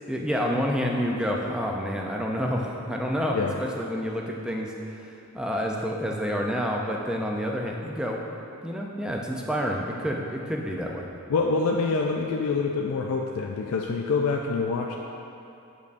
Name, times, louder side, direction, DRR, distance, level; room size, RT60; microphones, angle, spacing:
voice 1, 0.1-5.1 5.3-8.2 8.6-11.1, equal, 5° right, -1 dB, 0.4 m, -28 dB
voice 2, 11.3-14.9, left 4 dB, 65° left, 1 dB, 0.3 m, -26 dB
8.0 x 5.2 x 2.5 m, 2.7 s
head